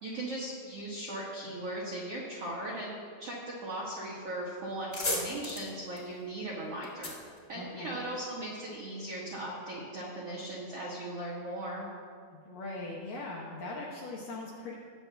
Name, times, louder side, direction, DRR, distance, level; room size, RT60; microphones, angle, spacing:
voice 1, 0.0-2.9 3.2-7.1 7.5-11.9, right 1 dB, 75° right, -5 dB, 1.3 m, -38 dB
sound 1, 4.2-4.3 4.6-8.2, left 2 dB, 35° left, 1.1 m, -37 dB
voice 2, 7.5-8.0 12.5-14.8, left 2 dB, 75° left, -3 dB, 2.1 m, -40 dB
19.0 x 7.7 x 3.4 m, 2.2 s
omnidirectional pair, 5.1 m